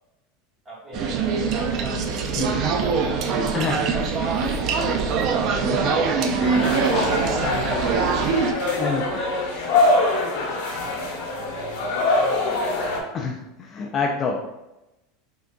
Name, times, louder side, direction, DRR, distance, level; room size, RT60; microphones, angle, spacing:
voice 1, 0.6-7.8 8.4-12.8, right 1 dB, 20° right, -6 dB, 1.4 m, -37 dB
sound 1, 0.9-8.5, right 5 dB, 40° right, 0.4 m, -23 dB
sound 2, 6.4-13.0, left 2 dB, 75° left, 1.0 m, -24 dB
voice 2, 13.1-14.4, left 5 dB, 30° left, 1 dB, 0.3 m, -27 dB
3.8 x 3.5 x 2.2 m, 0.94 s
supercardioid pair, 145°, 0 cm